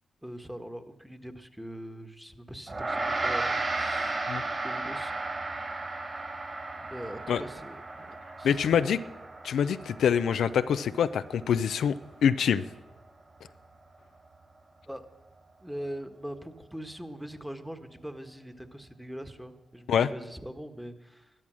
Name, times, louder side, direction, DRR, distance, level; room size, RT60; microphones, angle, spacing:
voice 1, 0.2-4.3 4.6-5.1 6.8-8.9 14.9-15.1 15.6-21.3, equal, 5° right, 8 dB, 1.4 m, -42 dB
Gong, 2.7-12.3, right 2 dB, 45° right, 3.8 m, -34 dB
voice 2, 8.4-9.0 9.4-11.9 12.2-12.6 19.9-20.1, left 8 dB, 80° left, 12 dB, 0.4 m, -25 dB
12.5 x 12.0 x 6.3 m, 1.0 s
supercardioid pair, 45°, 0 cm